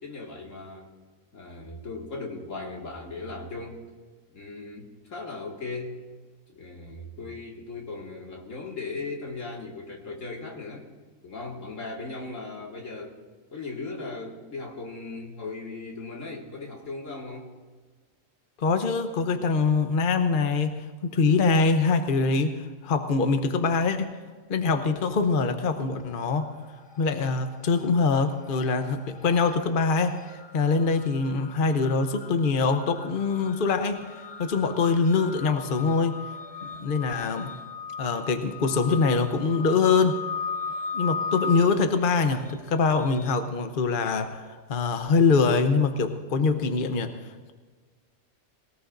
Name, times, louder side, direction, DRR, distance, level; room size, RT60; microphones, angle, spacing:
voice 1, 0.0-0.9 1.3-3.8 4.3-6.0 6.5-10.9 11.2-13.2 13.5-17.5, left 3 dB, 75° left, -1 dB, 2.4 m, -37 dB
voice 2, 18.6-24.1 24.5-26.5 27.0-36.2 36.6-37.5 38.0-40.2 40.9-47.1, left 4 dB, 45° left, 7 dB, 0.9 m, -24 dB
sound 1, 25.8-26.5 26.7-43.3, left 5 dB, 30° left, 0.5 m, -38 dB
21.5 x 18.0 x 2.6 m, 1.4 s
omnidirectional pair, 1.3 m